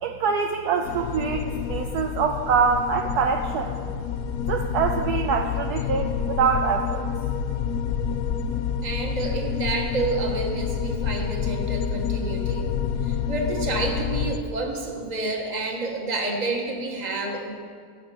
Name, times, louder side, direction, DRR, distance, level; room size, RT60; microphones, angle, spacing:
voice 1, 0.0-3.7 4.5-7.0, right 6 dB, 70° right, 4 dB, 1.0 m, -24 dB
sound 1, 0.8-14.4, left 7 dB, 70° left, 0.9 m, -28 dB
voice 2, 8.8-12.7 13.0-17.5, right 3 dB, 25° right, 1 dB, 1.3 m, -29 dB
16.0 x 6.6 x 5.2 m, 2.1 s
omnidirectional pair, 2.0 m